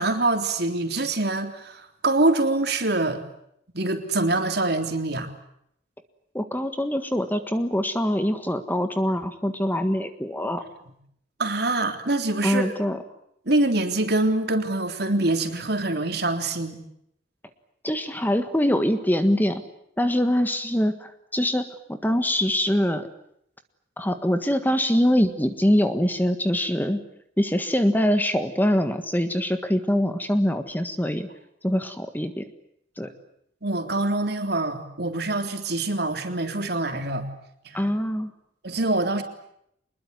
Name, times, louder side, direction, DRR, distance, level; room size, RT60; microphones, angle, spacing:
voice 1, 0.0-3.2 3.7-5.3 11.4-12.7 13.5-16.8 33.6-37.3 37.7-37.9 38.6-39.2, right 2 dB, 60° right, 6 dB, 3.5 m, -25 dB
voice 2, 6.3-10.6 12.4-13.0 17.8-19.6 20.0-23.1 24.0-27.0 27.4-31.3 31.6-32.4 33.0-33.1 37.7-38.3, equal, 10° left, 9 dB, 1.6 m, -24 dB
24.5 x 21.0 x 9.6 m, 0.73 s
head